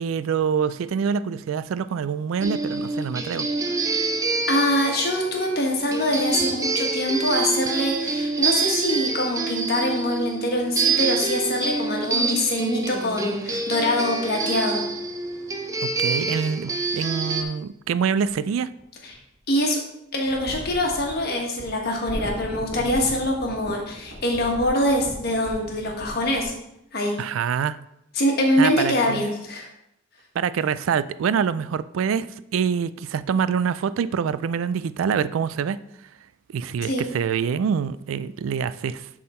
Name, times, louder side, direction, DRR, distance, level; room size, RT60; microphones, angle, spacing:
voice 1, 0.0-3.5 15.8-18.7 27.2-27.8 28.6-29.3 30.4-35.8 36.5-39.1, right 7 dB, 75° right, 0.3 m, -25 dB
sound 1, 2.4-17.4, right 4 dB, 15° right, 0.5 m, -26 dB
voice 2, 4.5-14.8 19.0-19.2 19.5-19.8 20.1-26.5 26.9-27.1 28.1-29.7 36.8-37.0, left 1 dB, 50° left, 1.4 m, -24 dB
sound 2, 18.2-19.4 20.2-26.5, equal, 55° right, 1.7 m, -38 dB
10.5 x 3.8 x 4.3 m
head